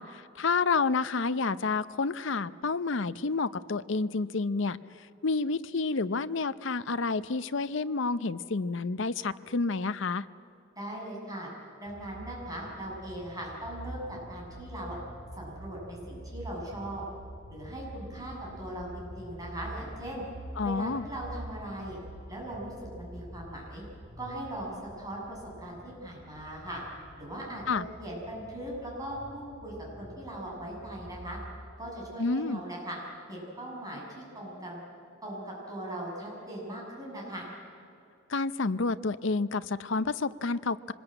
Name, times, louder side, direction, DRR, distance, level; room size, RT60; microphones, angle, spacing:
voice 1, 0.0-4.8 5.2-10.3 20.6-21.1 27.7-27.8 32.2-32.6 38.3-40.9, left 4 dB, 65° left, 14 dB, 0.6 m, -29 dB
voice 2, 10.8-11.5 11.8-15.0 15.3-17.0 17.5-20.2 20.6-22.0 22.3-23.8 24.2-26.8 27.2-31.4 31.8-33.0 33.3-34.8 35.2-37.5, right 1 dB, 15° right, -3 dB, 6.9 m, -39 dB
sound 1, 11.9-31.6, right 1 dB, 70° right, 2.9 m, -46 dB
25.0 x 20.5 x 9.0 m, 2.7 s
head